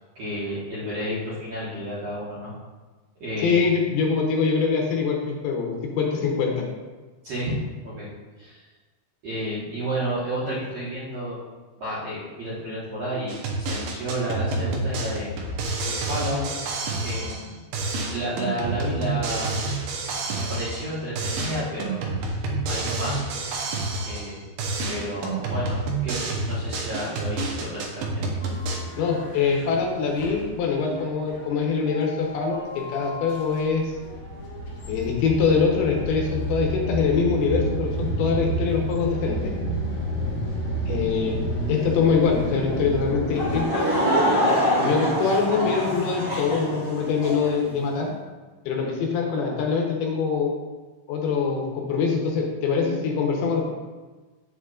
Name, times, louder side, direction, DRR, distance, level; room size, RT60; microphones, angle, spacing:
voice 1, 0.1-2.5 3.2-3.6 7.2-7.6 7.8-8.1 8.4-8.6 9.2-11.4 11.8-15.3 15.8-16.4 17.0-17.5 18.1-19.6 20.4-22.1 22.7-23.2 24.0-24.3 24.9-28.4, equal, 60° right, -10 dB, 1.7 m, -31 dB
voice 2, 3.4-6.7 29.0-33.8 34.9-39.5 40.9-41.4 41.7-43.9 44.8-48.1 48.7-50.5 51.1-53.7, left 5 dB, 75° left, 1 dB, 2.7 m, -24 dB
sound 1, 13.3-17.5 17.7-20.9 21.2-24.3 24.6-28.8, right 3 dB, 80° right, 3.0 m, -29 dB
sound 2, 28.4-43.6, equal, 50° left, 3.1 m, -30 dB
Laughter / Crowd, 43.3-47.5, equal, 35° right, 0.4 m, -24 dB
8.0 x 7.3 x 2.5 m, 1.3 s
omnidirectional pair, 4.8 m